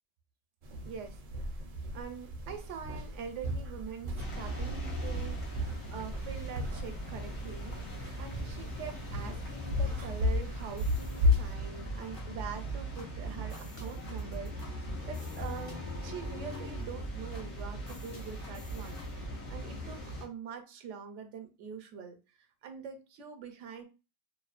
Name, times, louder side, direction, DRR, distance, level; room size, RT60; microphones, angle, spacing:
sound 1, 0.6-11.6, left 2 dB, 60° right, 0.6 m, -34 dB
voice 1, 0.8-1.7 1.9-23.8, right 6 dB, 85° right, 7 dB, 0.9 m, -44 dB
sound 2, 4.2-20.3, right 1 dB, 70° left, 0.9 m, -40 dB
sound 3, 10.7-19.3, right 3 dB, 35° left, 0.4 m, -45 dB
2.6 x 2.0 x 2.4 m, 0.29 s
omnidirectional pair, 1.2 m